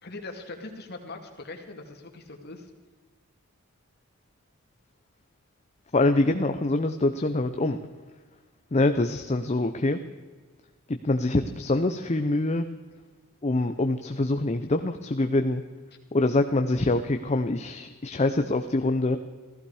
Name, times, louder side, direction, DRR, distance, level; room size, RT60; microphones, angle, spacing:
voice 1, 0.0-2.7 6.4-6.6, left 2 dB, 50° left, 3 dB, 2.2 m, -41 dB
voice 2, 5.9-7.8 8.7-10.0 10.9-12.7 13.4-15.6 16.1-19.2, left 2 dB, 30° left, 7 dB, 0.6 m, -25 dB
16.0 x 15.0 x 4.8 m, 1.4 s
head